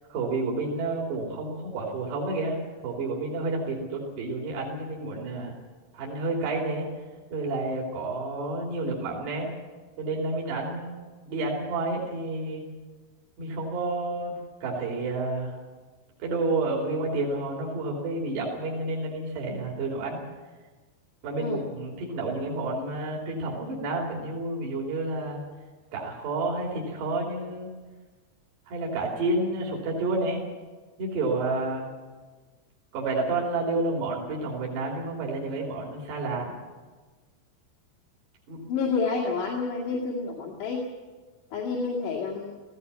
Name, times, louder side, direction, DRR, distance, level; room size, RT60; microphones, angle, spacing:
voice 1, 0.1-5.5 5.9-6.9 7.3-9.5 10.0-12.6 13.4-15.6 16.2-20.2 21.2-25.4 25.9-27.7 28.7-30.4 31.0-31.9 32.9-36.5 38.5-38.6, right 2 dB, 75° right, -2 dB, 5.1 m, -30 dB
voice 2, 38.7-40.8 41.5-42.6, left 4 dB, 80° left, -3 dB, 4.3 m, -29 dB
18.5 x 16.0 x 9.7 m, 1.3 s
omnidirectional pair, 4.9 m